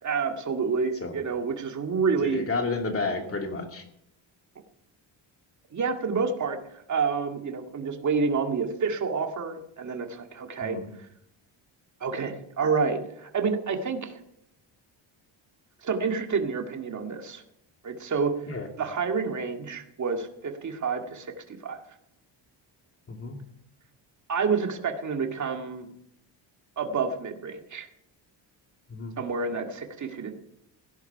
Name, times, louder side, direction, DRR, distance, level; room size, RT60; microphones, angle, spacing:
voice 1, 0.0-2.4 5.7-10.8 12.0-14.2 15.8-17.4 17.8-21.8 24.3-25.9 26.8-27.9 29.2-30.3, right 5 dB, 40° right, 4 dB, 2.0 m, -29 dB
voice 2, 2.2-3.8 10.6-10.8 18.5-18.7 23.1-23.4 28.9-29.2, left 3 dB, 30° left, 3 dB, 2.7 m, -31 dB
17.0 x 11.0 x 5.8 m, 0.76 s
cardioid pair, 120°, 46 cm